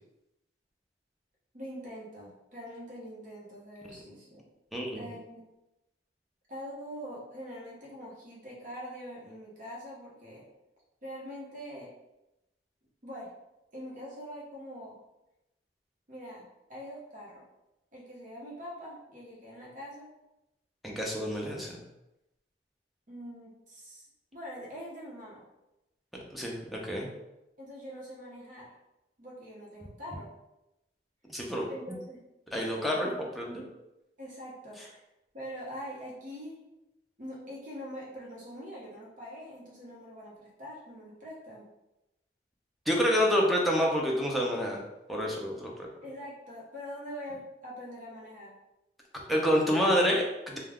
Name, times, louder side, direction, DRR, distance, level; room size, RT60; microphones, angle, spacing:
voice 1, 1.5-4.5 4.9-5.4 6.5-10.5 11.0-11.9 13.0-13.3 13.7-15.0 16.1-16.4 16.7-17.4 17.9-20.1 23.1-24.1 24.3-25.4 27.6-28.7 29.2-30.3 31.7-32.2 34.2-35.0 35.3-36.6 37.2-41.7 46.0-48.5, equal, 50° right, -5 dB, 0.9 m, -43 dB
voice 2, 4.7-5.1 20.8-21.8 26.3-27.1 31.3-31.7 32.5-33.6 42.9-44.8 45.1-45.9 49.3-50.6, equal, ahead, -2 dB, 0.5 m, -28 dB
2.2 x 2.2 x 3.4 m, 0.93 s
head